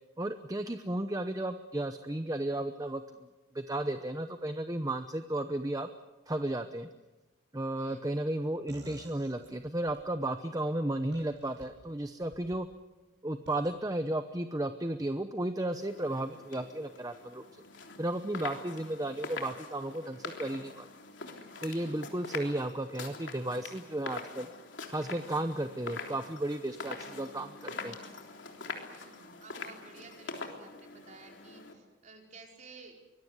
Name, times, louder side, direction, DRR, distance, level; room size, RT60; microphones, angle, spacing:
voice 1, 0.2-3.0 3.5-5.9 6.3-6.9 7.5-12.7 13.2-17.6 18.0-20.9 21.6-24.5 24.9-28.0, right 1 dB, 15° right, 8 dB, 0.8 m, -34 dB
voice 2, 7.8-8.3 18.5-18.8 21.7-22.2 28.9-32.9, right 4 dB, 35° right, 1 dB, 4.9 m, -54 dB
sound 1, 8.7-10.0 11.1-11.7 12.2-12.6 13.5-13.7, right 1 dB, 55° right, 7.2 m, -52 dB
sound 2, 15.7-31.7, left 4 dB, 65° left, 3.5 m, -44 dB
24.5 x 21.0 x 8.1 m, 1.1 s
head